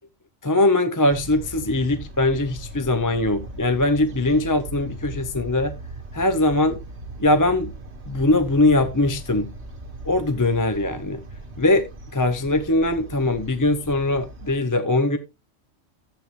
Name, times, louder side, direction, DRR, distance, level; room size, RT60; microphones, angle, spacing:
voice 1, 0.4-5.7 6.1-6.8 7.2-7.7 8.1-9.5 10.0-11.2 11.6-11.9 12.1-15.2, left 2 dB, 20° left, 0.6 m, -21 dB
sound 1, 1.1-14.6, right 2 dB, 50° right, 1.9 m, -39 dB
12.0 x 8.1 x 3.2 m
omnidirectional pair, 1.4 m